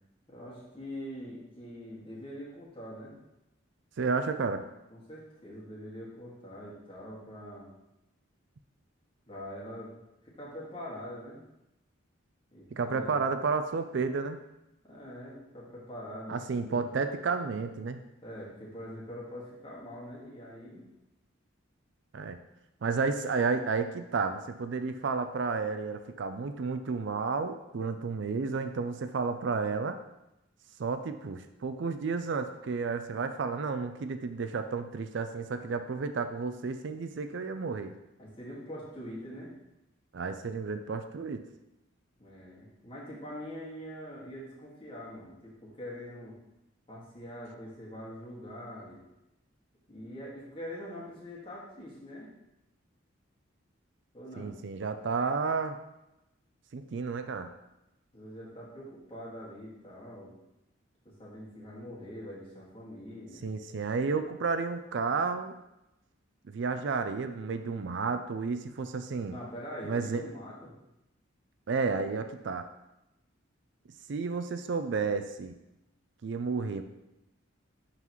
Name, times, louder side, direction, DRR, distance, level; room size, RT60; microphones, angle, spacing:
voice 1, 0.3-3.2 4.9-7.7 9.3-9.9 10.2-11.4 12.5-13.3 14.8-16.9 18.2-20.9 38.2-39.5 42.2-46.4 46.9-49.0 49.9-52.3 54.1-54.5 58.1-60.4 61.0-63.4 69.3-70.7, equal, 25° left, -5 dB, 1.8 m, -44 dB
voice 2, 4.0-4.6 12.7-14.4 16.3-18.0 22.1-22.4 22.8-30.0 30.8-37.9 40.1-41.4 54.4-55.8 56.7-57.5 63.4-65.5 66.5-69.3 69.9-70.2 71.7-72.7 74.1-75.5 76.2-76.8, right 4 dB, 60° right, 9 dB, 0.4 m, -31 dB
11.0 x 3.9 x 3.1 m, 0.92 s
head